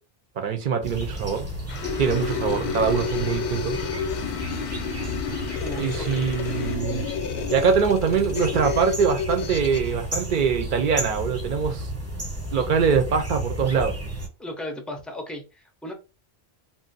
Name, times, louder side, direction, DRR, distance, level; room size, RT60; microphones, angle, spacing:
voice 1, 0.4-1.5 2.0-3.8 5.8-7.0 7.5-11.9 12.5-14.0, right 6 dB, 60° right, 0.6 m, -23 dB
sound 1, 0.8-14.3, equal, 15° right, 0.8 m, -33 dB
sound 2, 1.7-9.9, left 7 dB, 90° left, 0.8 m, -30 dB
sound 3, 1.7-6.8, left 5 dB, 55° left, 0.6 m, -41 dB
voice 2, 5.6-6.3 14.4-15.9, equal, ahead, 0.3 m, -36 dB
2.5 x 2.0 x 3.8 m
omnidirectional pair, 1.1 m